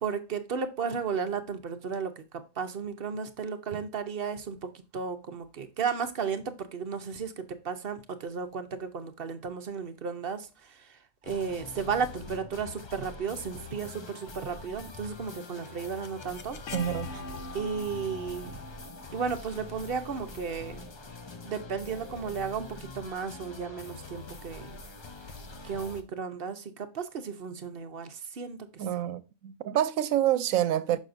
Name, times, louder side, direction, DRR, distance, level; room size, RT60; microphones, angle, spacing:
voice 1, 0.0-2.2 2.6-11.0 11.3-16.6 17.5-18.6 19.1-20.8 21.4-24.8 25.6-29.1, right 6 dB, 50° right, 0.9 m, -34 dB
sound 1, 11.2-26.0, left 3 dB, 35° left, 0.5 m, -45 dB
sound 2, 15.2-21.1, left 3 dB, 65° left, 1.1 m, -43 dB
voice 2, 16.7-17.2 28.8-31.0, right 11 dB, 85° right, 1.0 m, -27 dB
6.3 x 6.2 x 2.6 m
omnidirectional pair, 1.4 m